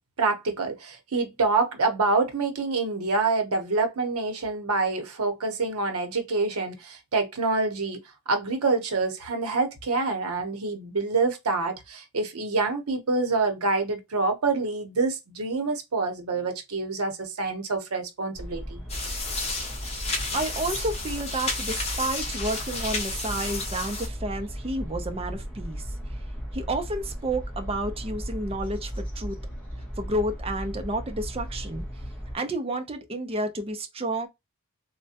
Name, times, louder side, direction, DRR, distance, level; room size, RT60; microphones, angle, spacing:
voice 1, 0.2-18.8, right 3 dB, 85° right, 0.8 m, -26 dB
sound 1, 18.3-32.4, equal, 5° left, 1.1 m, -36 dB
sound 2, 18.9-24.1, left 3 dB, 30° left, 1.0 m, -32 dB
voice 2, 20.3-26.2 26.5-29.4 30.0-31.8 32.3-34.3, right 1 dB, 25° right, 0.6 m, -31 dB
3.3 x 2.1 x 2.7 m
head